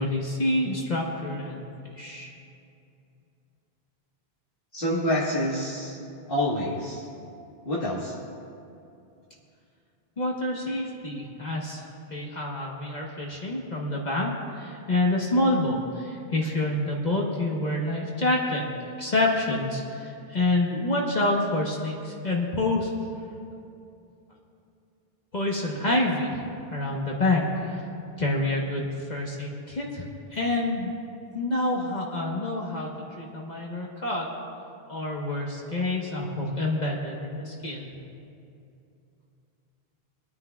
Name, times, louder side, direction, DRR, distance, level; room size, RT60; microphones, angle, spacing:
voice 1, 0.0-1.6 2.0-2.3 10.2-22.9 25.3-27.8 28.2-30.9 31.3-34.3 34.9-37.9, left 2 dB, 45° left, -2 dB, 1.2 m, -27 dB
voice 2, 4.7-6.0 6.3-7.1 7.6-8.1, left 1 dB, 60° left, -7 dB, 1.7 m, -27 dB
25.0 x 9.6 x 2.3 m, 2.6 s
omnidirectional pair, 1.0 m